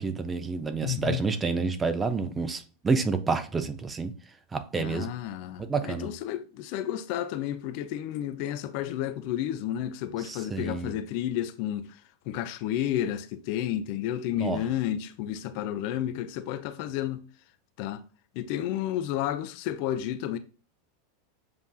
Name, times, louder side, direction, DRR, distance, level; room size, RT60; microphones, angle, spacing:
voice 1, 0.0-4.1 4.5-5.1 5.6-6.1 10.3-11.0 14.4-14.6, right 4 dB, 20° right, 0.5 m, -29 dB
voice 2, 0.8-1.2 4.7-11.9 12.3-17.2 17.8-18.0 18.4-20.4, left 11 dB, 50° left, 0.4 m, -31 dB
7.1 x 2.5 x 2.3 m
figure-of-eight pair, 85°, 0 cm